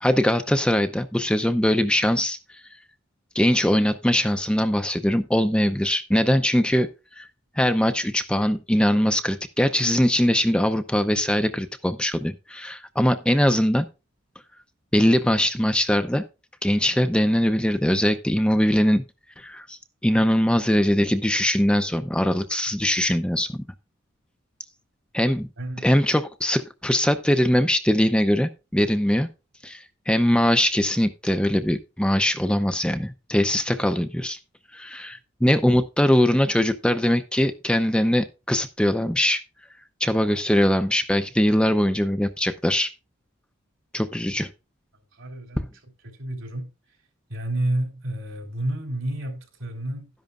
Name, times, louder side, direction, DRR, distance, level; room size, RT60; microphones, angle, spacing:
voice 1, 0.0-2.6 3.3-6.9 7.2-7.3 7.6-13.9 14.9-16.2 16.6-19.0 19.4-23.5 25.1-25.5 25.8-29.3 29.6-34.4 34.7-39.4 40.0-42.9 43.9-44.5, equal, 5° left, 0.6 m, -21 dB
voice 2, 25.6-25.9 45.1-46.7 47.3-50.1, right 1 dB, 65° right, 4.0 m, -30 dB
12.5 x 10.5 x 2.4 m
head